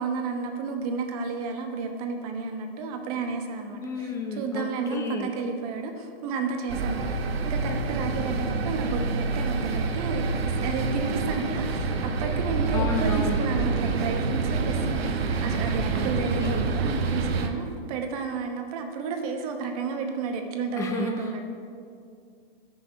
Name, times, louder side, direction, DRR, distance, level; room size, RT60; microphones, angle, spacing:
voice 1, 0.0-7.1 7.4-21.5, right 4 dB, 35° right, 5 dB, 1.1 m, -32 dB
voice 2, 3.8-5.3 12.7-13.4 15.9-16.7 20.8-21.5, left 3 dB, 10° left, 3 dB, 0.6 m, -32 dB
sound 1, 6.7-17.5, right 4 dB, 70° right, 1.1 m, -27 dB
13.5 x 6.5 x 4.7 m, 2.3 s
hypercardioid pair, 155°, 31 cm